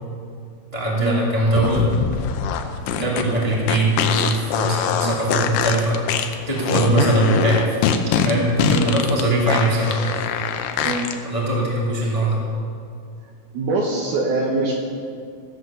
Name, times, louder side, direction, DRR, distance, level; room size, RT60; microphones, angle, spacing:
voice 1, 0.7-1.9 3.0-6.0 6.5-7.8 8.2-10.1 11.2-12.4, right 1 dB, 15° left, -4 dB, 1.2 m, -21 dB
sound 1, 1.5-11.1, left 7 dB, 85° left, 2.8 m, -23 dB
voice 2, 13.5-14.8, right 2 dB, 70° right, 0 dB, 2.1 m, -24 dB
15.0 x 8.1 x 6.7 m, 2.3 s
omnidirectional pair, 4.5 m